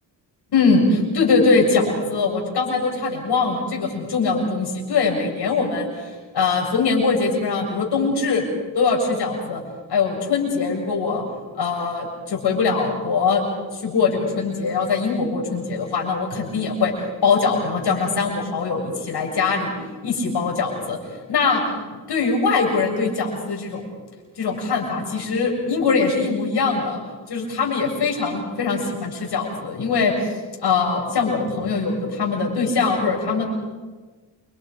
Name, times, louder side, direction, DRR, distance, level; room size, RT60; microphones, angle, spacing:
voice 1, 0.5-6.1 6.3-8.4 8.7-9.6 9.9-11.2 11.6-13.4 13.7-16.9 17.2-19.7 20.0-21.0 21.3-21.6 22.1-23.8 24.4-27.0 27.3-30.3 30.6-33.5, left 4 dB, 65° left, 0 dB, 7.2 m, -22 dB
29.0 x 24.5 x 5.3 m, 1.3 s
cardioid pair, 90°, 43 cm